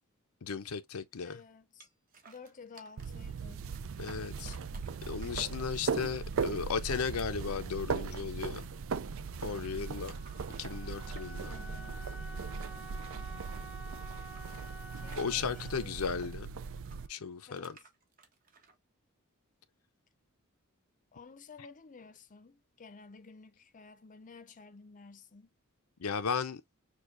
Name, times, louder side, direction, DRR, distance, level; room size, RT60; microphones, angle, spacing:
voice 1, 0.4-1.4 4.0-4.6 5.1-8.7 9.4-10.2 10.6-11.5 15.2-16.5 17.1-17.7 26.0-26.6, left 6 dB, 85° left, 0.6 m, -35 dB
voice 2, 1.2-1.9 2.3-3.6 5.2-5.4 11.4-12.1 15.0-16.0 17.5-17.9 21.1-25.5, left 4 dB, 35° left, 0.6 m, -53 dB
sound 1, 1.8-3.2 3.6-5.8 6.2-8.8 9.0-13.2 13.5-16.4 16.9-18.8, right 4 dB, 40° right, 1.4 m, -59 dB
sound 2, 3.0-17.1, right 5 dB, 65° right, 0.4 m, -38 dB
Wind instrument woodwind instrument, 8.7-17.4, equal, 5° right, 1.1 m, -51 dB
6.4 x 2.3 x 2.5 m
head